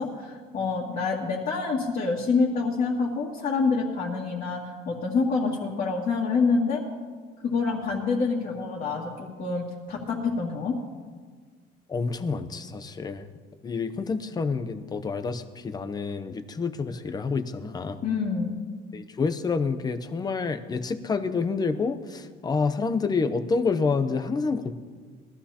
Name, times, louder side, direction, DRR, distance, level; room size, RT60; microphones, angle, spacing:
voice 1, 0.0-4.6 4.9-6.8 7.4-10.8 18.0-18.6, left 4 dB, 45° left, -5 dB, 2.1 m, -26 dB
voice 2, 11.9-13.3 13.6-18.0 18.9-24.7, left 4 dB, 20° left, 10 dB, 0.7 m, -28 dB
22.0 x 13.5 x 2.9 m, 1.5 s
cardioid pair, 160°, 20 cm